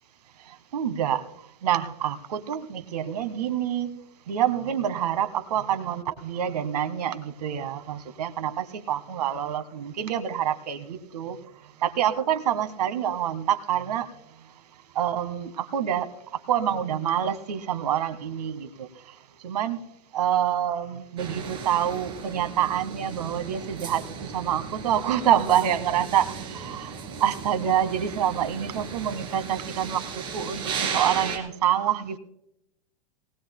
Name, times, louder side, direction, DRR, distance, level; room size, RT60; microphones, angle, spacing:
voice 1, 0.5-1.2 1.6-4.0 4.3-11.4 11.8-14.1 14.9-18.9 19.4-19.8 20.1-32.2, right 10 dB, 85° right, 10 dB, 1.6 m, -27 dB
sound 1, 21.2-31.4, right 6 dB, 25° right, 2.5 m, -36 dB
19.0 x 19.0 x 2.2 m, 0.78 s
supercardioid pair, 160°, 20 cm